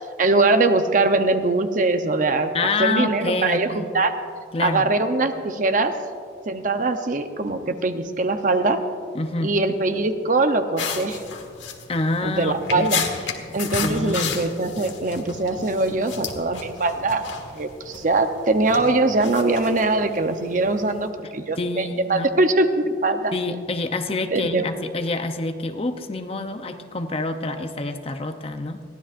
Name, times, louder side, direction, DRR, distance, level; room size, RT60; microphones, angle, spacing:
voice 1, 0.2-4.1 4.6-5.9 6.5-8.8 9.4-11.2 12.2-13.0 13.5-17.2 17.5-23.3 24.3-24.7, right 2 dB, 45° right, 7 dB, 0.7 m, -22 dB
voice 2, 2.5-3.9 4.5-4.9 9.1-9.5 11.9-13.1 13.8-14.4 21.6-22.3 23.3-28.8, left 2 dB, 30° left, 7 dB, 0.6 m, -27 dB
sound 1, 10.8-21.1, left 6 dB, 90° left, 1.6 m, -33 dB
22.0 x 15.5 x 2.5 m, 2.3 s
head